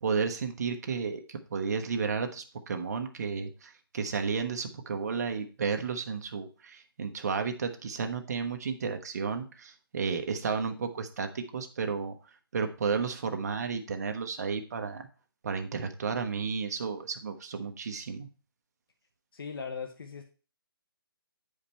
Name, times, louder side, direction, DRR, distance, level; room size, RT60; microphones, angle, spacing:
voice 1, 0.0-12.2 12.5-15.1 15.4-18.3, right 5 dB, 40° right, 6 dB, 1.0 m, -32 dB
voice 2, 19.3-20.2, left 5 dB, 65° left, 4 dB, 1.0 m, -38 dB
8.4 x 5.1 x 4.3 m, 0.36 s
hypercardioid pair, 165°, 13 cm